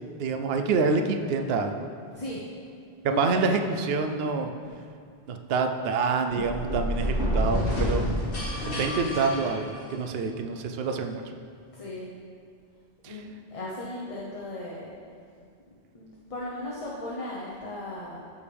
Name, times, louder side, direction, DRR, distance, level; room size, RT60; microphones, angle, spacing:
voice 1, 0.2-1.8 3.2-4.5 5.3-8.0 8.6-11.2 13.0-13.2, right 4 dB, 70° right, 5 dB, 0.8 m, -27 dB
voice 2, 3.1-3.8 11.7-12.1 13.1-14.9 15.9-18.2, left 1 dB, 35° left, -5 dB, 1.0 m, -37 dB
sound 1, 6.2-10.3, equal, 60° left, 1.9 m, -29 dB
14.0 x 5.1 x 3.4 m, 2.3 s
omnidirectional pair, 1.1 m